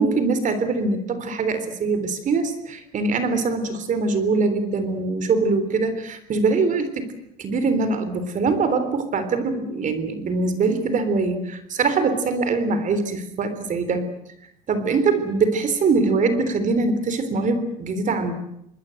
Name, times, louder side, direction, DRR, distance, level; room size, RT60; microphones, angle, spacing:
voice 1, 0.0-7.1 7.4-14.0 14.7-18.3, right 4 dB, 40° right, 11 dB, 3.6 m, -23 dB
25.5 x 20.5 x 7.8 m, 0.77 s
supercardioid pair, 100°, 20 cm